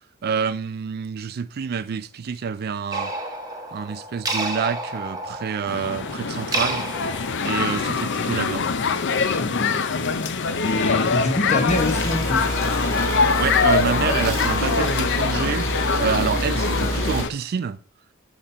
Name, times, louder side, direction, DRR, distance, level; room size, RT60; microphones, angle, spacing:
voice 1, 0.2-3.1 3.7-6.8 7.4-8.6 13.4-15.7 16.0-17.8, right 6 dB, 45° right, 0.4 m, -27 dB
sound 1, 2.9-8.1, right 2 dB, 15° right, 1.0 m, -31 dB
sound 2, 5.7-17.3, left 5 dB, 55° left, 0.6 m, -24 dB
voice 2, 9.4-9.8 10.6-12.5, left 2 dB, 30° left, 0.9 m, -25 dB
sound 3, 11.7-17.2, right 1 dB, 15° left, 1.6 m, -27 dB
7.3 x 4.1 x 4.3 m
head